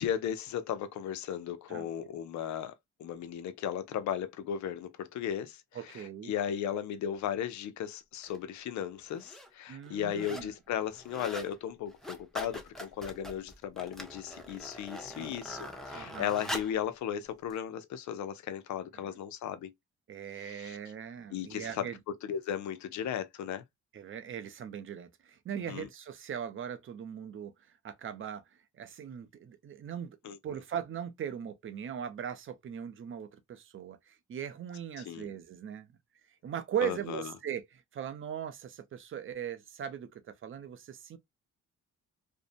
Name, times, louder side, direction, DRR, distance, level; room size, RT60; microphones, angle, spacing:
voice 1, 0.0-2.7 3.0-5.6 5.8-19.7 20.4-20.8 21.3-21.9 22.3-23.6 25.7-25.9 30.2-30.6 35.1-35.3 36.8-37.3, left 9 dB, 70° left, 0.6 m, -36 dB
voice 2, 5.7-6.3 9.7-10.5 15.2-15.3 15.9-16.3 18.9-19.2 20.1-22.0 23.9-27.5 27.8-28.4 28.8-30.2 30.4-36.0 36.4-41.2, right 9 dB, 45° right, 0.5 m, -39 dB
sound 1, 8.2-8.4 9.1-9.5 9.8-10.5 10.8-11.5 11.9-16.8 17.5-17.6, equal, ahead, 0.5 m, -43 dB
2.6 x 2.0 x 2.5 m
cardioid pair, 90°, 30 cm